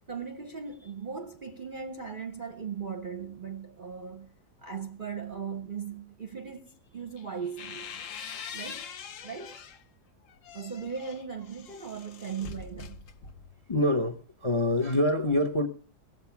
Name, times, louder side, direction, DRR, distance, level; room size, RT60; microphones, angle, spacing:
voice 1, 0.1-4.3 4.6-8.0 8.5-8.9 9.2-9.6 10.5-13.0, right 6 dB, 40° right, 0.7 m, -38 dB
sound 1, 7.2-9.8 10.3-13.6, left 6 dB, 60° left, 1.0 m, -43 dB
voice 2, 13.7-15.7, left 1 dB, 25° left, 0.7 m, -25 dB
18.0 x 7.7 x 5.9 m
omnidirectional pair, 1.8 m